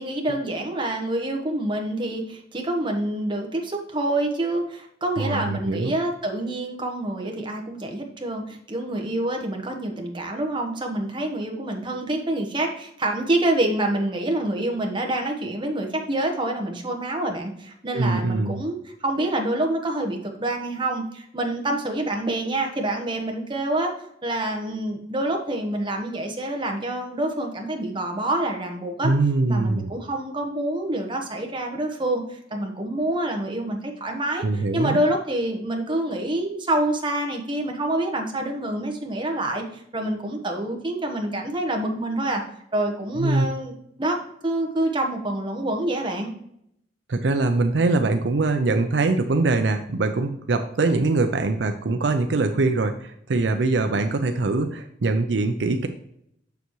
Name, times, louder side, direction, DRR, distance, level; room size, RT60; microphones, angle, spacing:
voice 1, 0.0-23.9 24.2-29.1 29.5-42.4 42.7-46.3, right 1 dB, 30° right, 2 dB, 1.1 m, -27 dB
voice 2, 5.2-5.9 17.9-18.6 29.0-29.9 34.4-35.0 43.2-43.5 47.1-55.9, right 3 dB, 70° right, 7 dB, 0.5 m, -23 dB
6.9 x 6.8 x 3.1 m, 0.72 s
head